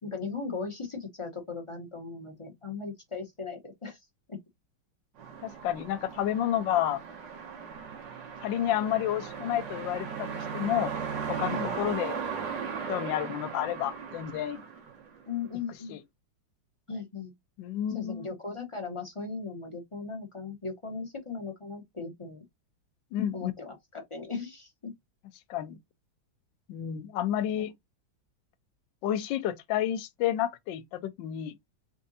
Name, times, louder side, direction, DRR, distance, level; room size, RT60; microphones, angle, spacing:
voice 1, 0.0-4.4 11.5-11.7 15.3-16.0 16.9-17.3 17.9-22.5 23.3-24.9, left 4 dB, 45° left, 0.4 m, -38 dB
sound 1, 5.2-15.4, right 6 dB, 60° right, 1.8 m, -37 dB
voice 2, 5.4-7.0 8.4-10.9 11.3-12.2 12.9-14.6 15.9-16.0 17.6-18.3 23.1-23.5 25.5-25.8 26.7-27.7 29.0-31.5, left 11 dB, 70° left, 1.3 m, -30 dB
4.5 x 3.7 x 2.7 m
omnidirectional pair, 2.3 m